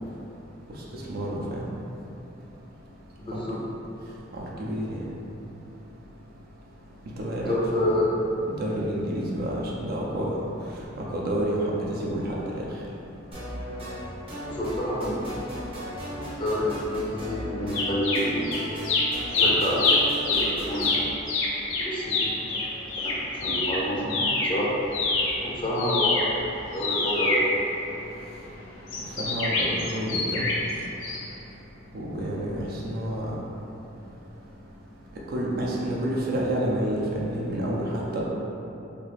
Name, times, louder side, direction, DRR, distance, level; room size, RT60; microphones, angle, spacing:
voice 1, 1.1-1.7 3.3-3.4 4.3-5.1 7.2-8.0 8.5-10.3 11.0-12.6 29.2-30.5 31.9-33.3 35.3-38.3, right 1 dB, 50° right, -3 dB, 0.4 m, -29 dB
voice 2, 3.2-3.6 7.5-8.1 14.5-15.4 16.4-18.4 19.3-19.9 20.2-20.9 21.8-22.3 23.4-24.7 25.4-26.3 26.7-27.5, equal, 25° left, -6 dB, 0.5 m, -28 dB
sound 1, 13.3-21.1, equal, 30° right, 0.8 m, -36 dB
sound 2, 17.7-18.6 18.8-24.6 24.9-28.2 28.9-30.7 31.0-31.2, left 3 dB, 80° left, 0.5 m, -25 dB
2.9 x 2.4 x 3.1 m, 2.9 s
head